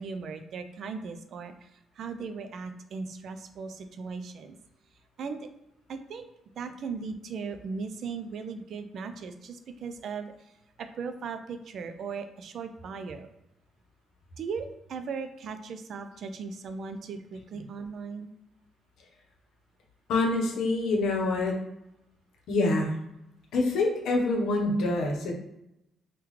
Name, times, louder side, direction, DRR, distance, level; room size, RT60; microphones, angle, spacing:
voice 1, 0.0-1.7 2.0-4.6 5.2-5.5 5.9-6.3 6.6-10.3 10.8-13.3 14.4-18.3, right 5 dB, 65° right, 8 dB, 0.4 m, -38 dB
voice 2, 20.1-21.6 22.5-23.0 23.5-25.3, left 2 dB, 80° left, 1 dB, 0.8 m, -26 dB
3.6 x 2.2 x 3.0 m, 0.85 s
cardioid pair, 90°, 0 cm